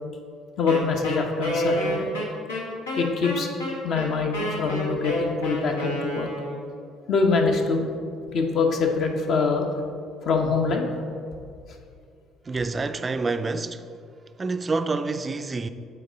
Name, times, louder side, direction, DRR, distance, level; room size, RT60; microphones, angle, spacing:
voice 1, 0.6-2.1 3.0-3.5 3.8-6.3 7.1-7.9 8.3-9.7 10.2-10.8, left 4 dB, 55° left, 0.9 m, -24 dB
Wind instrument woodwind instrument, 0.7-6.7, equal, 90° left, 1.1 m, -29 dB
voice 2, 12.5-13.9 14.4-15.7, right 3 dB, 30° right, 0.4 m, -27 dB
7.9 x 4.6 x 3.8 m
hypercardioid pair, 55°, 0 cm